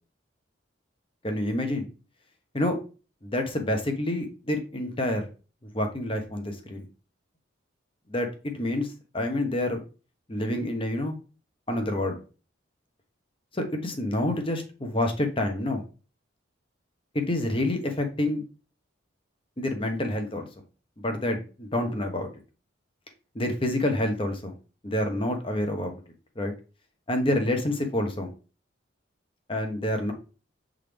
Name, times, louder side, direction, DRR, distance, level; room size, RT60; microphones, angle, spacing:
voice 1, 1.2-1.9 2.5-2.8 3.2-5.2 5.7-6.8 8.1-9.8 10.3-11.1 11.7-12.2 13.5-15.8 17.1-18.4 19.6-20.5 21.0-22.3 23.3-24.5 24.8-26.0 26.4-26.5 27.1-28.3 29.5-30.1, left 1 dB, 25° left, 4 dB, 1.0 m, -28 dB
7.3 x 3.8 x 3.4 m, 0.34 s
head